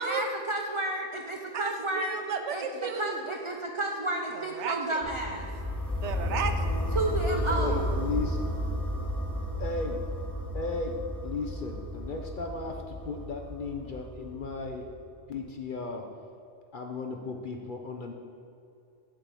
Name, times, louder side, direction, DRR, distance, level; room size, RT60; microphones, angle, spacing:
voice 1, 0.0-2.1 2.5-5.5 6.9-8.0, right 2 dB, 45° right, 1 dB, 0.4 m, -31 dB
voice 2, 1.5-3.2 4.3-5.0 5.9-6.6, right 5 dB, 70° right, 7 dB, 0.9 m, -33 dB
sound 1, 5.0-14.9, equal, ahead, 1.0 m, -33 dB
voice 3, 7.5-8.4 9.6-10.0 10.5-11.0 11.2-14.9 15.3-16.0 16.7-18.1, left 3 dB, 55° left, 3 dB, 0.6 m, -35 dB
7.6 x 4.5 x 6.9 m, 2.6 s
omnidirectional pair, 1.3 m